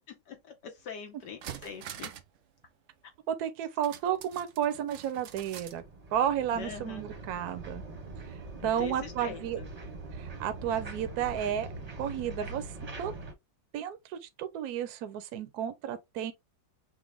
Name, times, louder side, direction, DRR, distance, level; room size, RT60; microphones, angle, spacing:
voice 1, 0.0-2.1 6.5-7.0 8.6-9.7, left 7 dB, 75° left, 1.5 m, -43 dB
sound 1, 0.8-0.9 1.2-2.4 2.6-2.7 3.8-5.8 6.1-6.2, right 9 dB, 85° right, 0.6 m, -45 dB
voice 2, 3.3-5.8 6.1-7.8 8.6-9.6 10.2-12.7 13.0-13.1 13.7-16.3, right 9 dB, 70° right, 1.1 m, -32 dB
sound 2, 5.3-13.3, right 3 dB, 30° right, 0.8 m, -43 dB
6.0 x 2.1 x 3.5 m
omnidirectional pair, 1.9 m